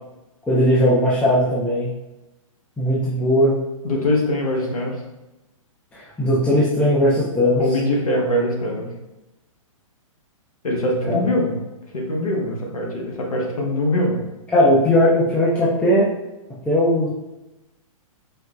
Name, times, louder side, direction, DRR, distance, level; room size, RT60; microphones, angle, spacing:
voice 1, 0.5-1.9 2.8-3.5 5.9-7.6 11.1-11.2 14.5-16.1 16.7-17.1, equal, 5° left, -8 dB, 0.5 m, -18 dB
voice 2, 3.8-4.9 7.6-8.9 10.6-11.6 11.9-14.2, left 1 dB, 90° left, -1 dB, 1.0 m, -22 dB
4.6 x 2.0 x 2.3 m, 1.0 s
hypercardioid pair, 130°, 18 cm